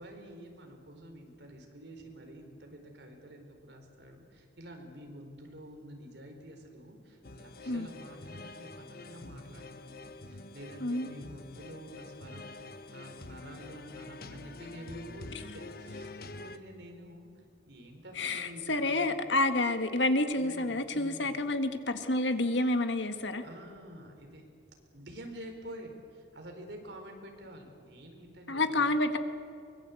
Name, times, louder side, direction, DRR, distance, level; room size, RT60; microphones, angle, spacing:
voice 1, 0.0-12.5 12.9-19.1 20.3-21.3 23.4-24.4 24.9-29.0, equal, 65° right, 4 dB, 4.3 m, -48 dB
sound 1, 7.2-16.6, left 2 dB, 50° left, 1.1 m, -46 dB
voice 2, 18.2-23.4 28.5-29.2, left 2 dB, 75° left, 8 dB, 1.7 m, -29 dB
24.0 x 21.5 x 8.4 m, 2.6 s
head